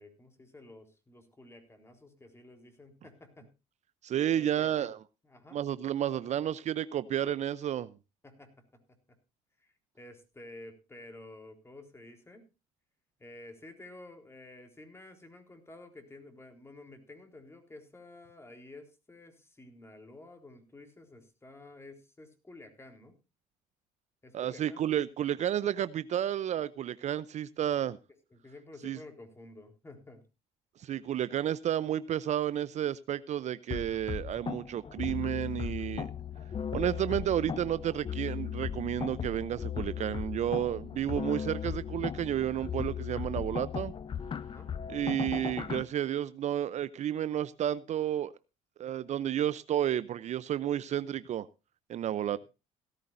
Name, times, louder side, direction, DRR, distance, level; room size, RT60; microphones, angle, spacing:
voice 1, 0.0-3.5 4.3-4.9 5.2-5.6 8.2-8.5 9.6-12.4 13.2-23.2 24.2-25.0 28.3-30.2 44.4-44.7 52.3-52.4, left 2 dB, 15° left, 3.9 m, -51 dB
voice 2, 4.0-5.0 5.5-7.9 24.3-28.0 28.8-29.0 30.8-36.1 36.7-43.9 44.9-48.3 48.8-51.5 51.9-52.4, right 11 dB, 50° right, 0.6 m, -31 dB
sound 1, 33.7-45.8, left 8 dB, 35° left, 0.8 m, -37 dB
17.5 x 13.0 x 2.6 m
supercardioid pair, 80°, 15 cm